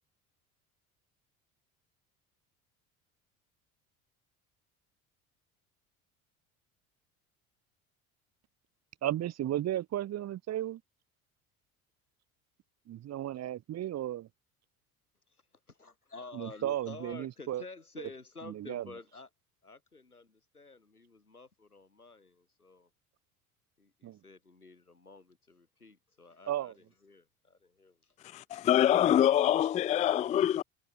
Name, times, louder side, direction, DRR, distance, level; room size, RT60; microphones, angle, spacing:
voice 1, 9.0-10.8 12.9-14.3 16.3-17.6 18.5-18.8 24.0-24.2 26.5-26.7, right 12 dB, 35° right, 1.3 m, -34 dB
voice 2, 15.3-19.3 19.6-22.9 23.8-28.5, left 3 dB, 85° left, 6.1 m, -51 dB
voice 3, 28.2-30.6, left 11 dB, 20° left, 0.4 m, -25 dB
figure-of-eight pair, 60°, 44 cm